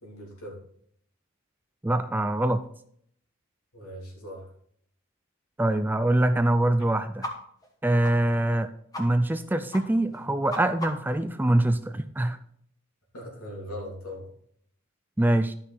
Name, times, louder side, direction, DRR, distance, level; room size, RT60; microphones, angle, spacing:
voice 1, 0.0-0.6 3.7-4.5 13.1-14.3, equal, 85° left, -1 dB, 3.1 m, -39 dB
voice 2, 1.8-2.6 5.6-7.3 7.8-8.7 9.0-12.4 15.2-15.5, right 1 dB, 10° right, 11 dB, 0.3 m, -24 dB
sound 1, 7.2-7.3 7.6-7.7 8.0-8.1 8.5-8.6 8.9-9.1 9.3-9.4 9.7-9.8 10.1-11.2, left 1 dB, 15° left, 1.2 m, -36 dB
11.5 x 5.8 x 4.1 m, 0.65 s
head